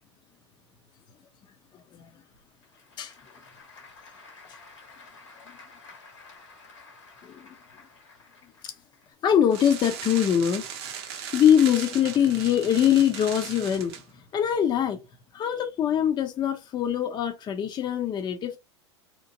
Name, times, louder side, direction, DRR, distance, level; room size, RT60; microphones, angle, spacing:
voice 1, 1.7-2.1 3.0-3.1 5.5-5.6 7.2-7.5 8.6-8.7 9.2-10.7 11.1-15.0 15.3-18.6, left 9 dB, 30° left, 0.6 m, -23 dB
Applause / Crowd, 2.3-9.1, left 3 dB, 85° left, 1.6 m, -51 dB
sound 1, 9.5-14.0, right 8 dB, 60° right, 0.6 m, -38 dB
2.9 x 2.1 x 2.6 m
hypercardioid pair, 90°, 15 cm